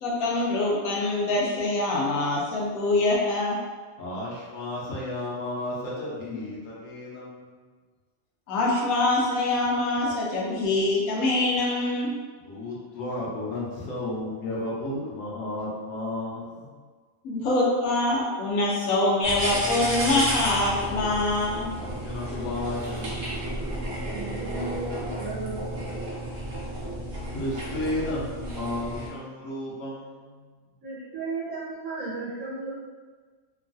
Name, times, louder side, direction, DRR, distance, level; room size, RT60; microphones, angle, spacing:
voice 1, 0.0-3.6 8.5-12.1 17.2-21.7, left 2 dB, 90° left, -3 dB, 1.1 m, -24 dB
voice 2, 4.0-7.5 12.4-16.7 21.8-23.2 27.3-30.3, left 1 dB, 70° left, -6 dB, 1.1 m, -33 dB
sound 1, 19.2-29.1, right 1 dB, 50° right, 0.8 m, -32 dB
voice 3, 24.1-25.7 30.8-32.7, right 3 dB, 80° right, -7 dB, 1.1 m, -34 dB
3.0 x 2.3 x 2.5 m, 1.5 s
omnidirectional pair, 1.4 m